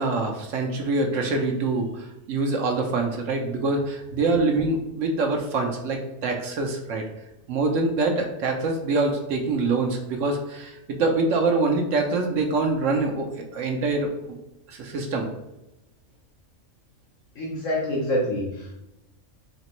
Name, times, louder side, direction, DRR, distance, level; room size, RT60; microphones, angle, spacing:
voice 1, 0.0-7.0 7.5-14.1 14.7-15.3, right 3 dB, 75° right, 2 dB, 1.0 m, -25 dB
voice 2, 17.3-18.8, equal, 80° left, -6 dB, 1.2 m, -26 dB
4.1 x 3.0 x 2.9 m, 0.90 s
omnidirectional pair, 1.4 m